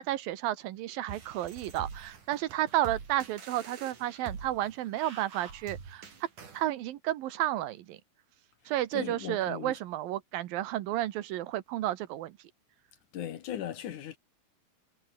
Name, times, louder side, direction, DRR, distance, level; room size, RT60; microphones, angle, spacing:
voice 1, 0.0-6.3 6.5-8.0 8.7-12.4, right 14 dB, 80° right, 2.9 m, -32 dB
sound 1, 1.1-6.7, right 5 dB, 60° right, 5.7 m, -45 dB
voice 2, 8.9-9.7 13.1-14.2, left 10 dB, 65° left, 2.6 m, -38 dB
omnidirectional pair, 4.2 m